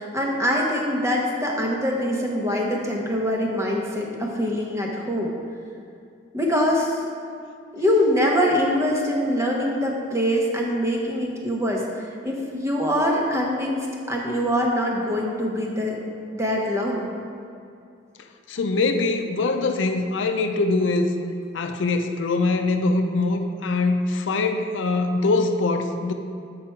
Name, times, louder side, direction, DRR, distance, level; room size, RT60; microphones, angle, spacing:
voice 1, 0.0-5.3 6.3-7.0 7.7-16.0 16.3-17.1, equal, 15° right, -1 dB, 0.9 m, -24 dB
voice 2, 18.5-21.1 21.5-26.1, left 3 dB, 80° left, 6 dB, 0.5 m, -23 dB
7.6 x 4.7 x 4.4 m, 2.4 s
head